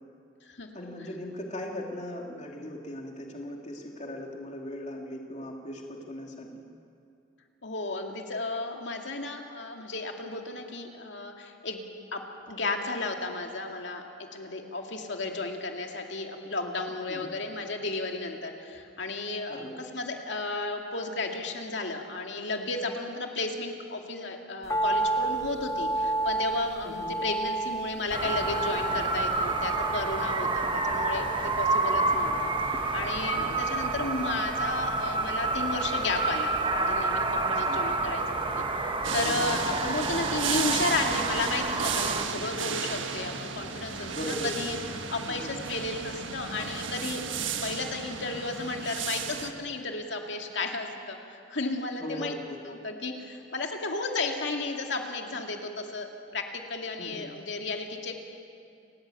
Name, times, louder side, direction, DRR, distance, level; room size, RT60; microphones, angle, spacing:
voice 1, 0.7-6.7 17.1-17.3 19.5-19.7 26.8-27.2 33.3-33.5 37.4-37.8 39.3-39.8 44.1-44.5 45.3-45.6 52.0-52.6 57.0-57.3, equal, 35° left, 0 dB, 2.8 m, -39 dB
voice 2, 7.6-11.8 12.1-12.2 12.5-14.0 14.3-38.2 38.6-44.8 45.1-47.3 47.6-52.4 52.6-58.2, left 3 dB, 65° left, 2 dB, 2.4 m, -33 dB
sound 1, 24.7-37.0 37.2-37.3, right 2 dB, 15° left, 0.7 m, -33 dB
sound 2, 28.1-42.2, right 3 dB, 25° right, 1.4 m, -29 dB
sound 3, 39.0-49.5, right 6 dB, 80° right, 1.5 m, -34 dB
30.0 x 14.5 x 9.1 m, 2.5 s
head